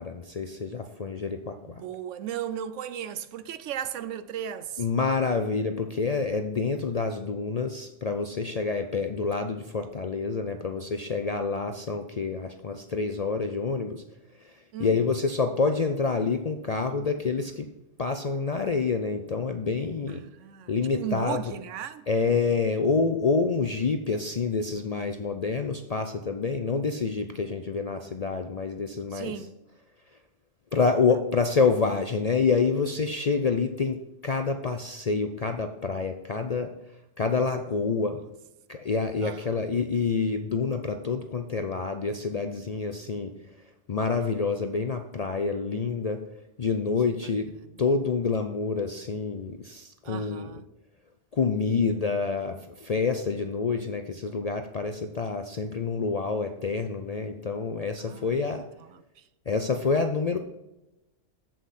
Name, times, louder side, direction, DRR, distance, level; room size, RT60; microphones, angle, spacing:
voice 1, 0.0-1.6 4.8-14.0 14.8-17.7 18.0-20.2 20.7-21.4 22.1-29.3 30.7-36.7 37.2-38.2 38.7-43.3 43.9-46.2 46.6-47.5 47.8-50.5 51.3-58.6 59.5-60.4, left 4 dB, 50° left, 0.4 m, -27 dB
voice 2, 1.6-4.9 14.7-15.1 20.1-22.1 29.1-29.5 37.6-38.3 39.2-39.6 47.1-47.3 47.6-47.9 50.0-50.7 58.0-58.4 58.8-59.2, right 9 dB, 75° right, 1.0 m, -37 dB
8.1 x 7.7 x 4.2 m
omnidirectional pair, 1.3 m